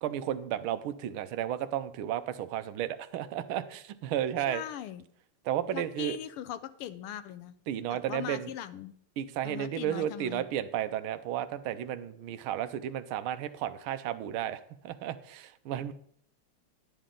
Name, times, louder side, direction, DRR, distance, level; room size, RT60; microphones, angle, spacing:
voice 1, 0.0-4.6 5.5-6.2 7.7-8.5 9.2-15.9, right 11 dB, 75° right, 12 dB, 1.4 m, -33 dB
voice 2, 4.5-5.0 5.7-7.5 7.9-8.9 9.4-10.4, left 11 dB, 85° left, 13 dB, 1.5 m, -40 dB
10.5 x 10.0 x 3.8 m, 0.64 s
omnidirectional pair, 2.4 m